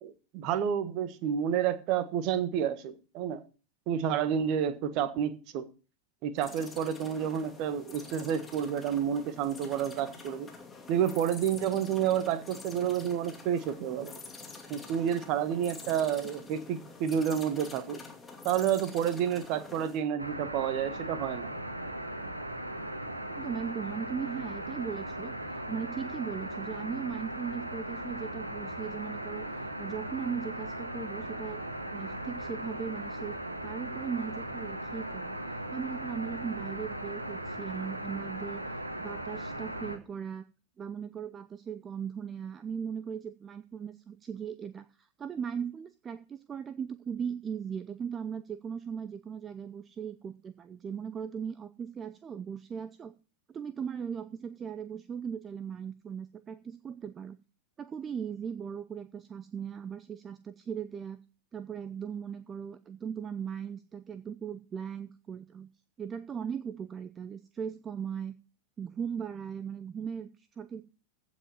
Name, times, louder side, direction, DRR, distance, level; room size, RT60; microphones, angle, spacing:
voice 1, 0.0-3.4 3.9-5.6 6.2-10.5 10.9-14.1 14.7-18.0 18.4-21.5, right 9 dB, 40° right, 1.5 m, -30 dB
sound 1, 6.4-20.0, left 4 dB, 15° left, 2.6 m, -47 dB
sound 2, 20.2-40.0, right 1 dB, 85° right, 1.5 m, -38 dB
voice 2, 23.3-31.6 31.9-33.3 33.6-38.6 39.0-40.4 40.8-53.1 53.5-57.4 57.8-61.2 61.5-65.7 66.0-68.4 68.8-70.8, right 7 dB, 20° right, 0.6 m, -38 dB
15.5 x 5.3 x 6.9 m
figure-of-eight pair, 90°, 0 cm